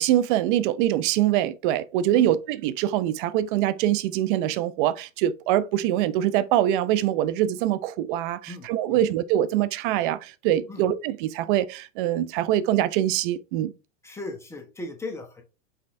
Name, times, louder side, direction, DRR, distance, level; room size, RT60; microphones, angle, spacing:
voice 1, 0.0-13.7, right 12 dB, 45° right, 0.5 m, -24 dB
voice 2, 8.5-9.0 10.7-10.8 14.0-15.4, left 3 dB, 5° left, 0.9 m, -37 dB
5.5 x 3.7 x 2.5 m
hypercardioid pair, 115°, 39 cm